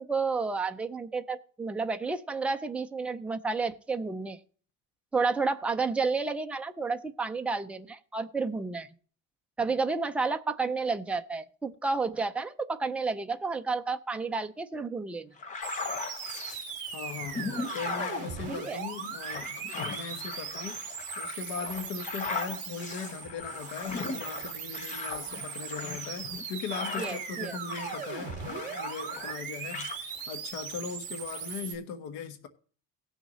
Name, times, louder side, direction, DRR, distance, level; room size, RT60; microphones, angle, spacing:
voice 1, 0.0-4.4 5.1-8.9 9.6-15.3 18.5-18.8 27.0-27.6, right 4 dB, 5° right, 0.3 m, -31 dB
sound 1, 15.4-16.6 17.1-27.4 27.7-29.4 29.7-30.0, left 4 dB, 25° left, 0.8 m, -38 dB
sound 2, 15.6-31.7, right 6 dB, 25° right, 2.2 m, -39 dB
voice 2, 16.9-20.8 21.2-32.5, left 6 dB, 75° left, 1.2 m, -39 dB
18.0 x 6.4 x 3.0 m
cardioid pair, 175°, 30 cm